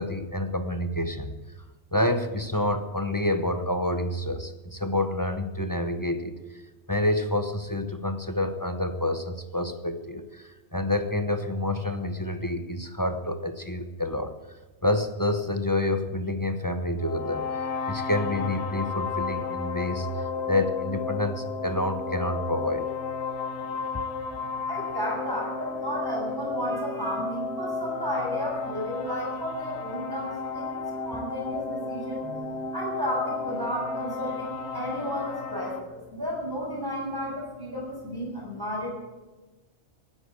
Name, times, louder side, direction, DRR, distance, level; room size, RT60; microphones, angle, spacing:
voice 1, 0.0-1.3 1.9-6.4 6.9-14.3 14.8-17.4 17.9-20.1 20.5-22.9, left 1 dB, 15° left, 7 dB, 0.9 m, -28 dB
sound 1, 17.0-35.8, left 4 dB, 55° left, 1.3 m, -33 dB
voice 2, 24.4-38.9, equal, 15° right, -3 dB, 6.7 m, -33 dB
17.5 x 9.9 x 8.2 m, 1.2 s
omnidirectional pair, 1.4 m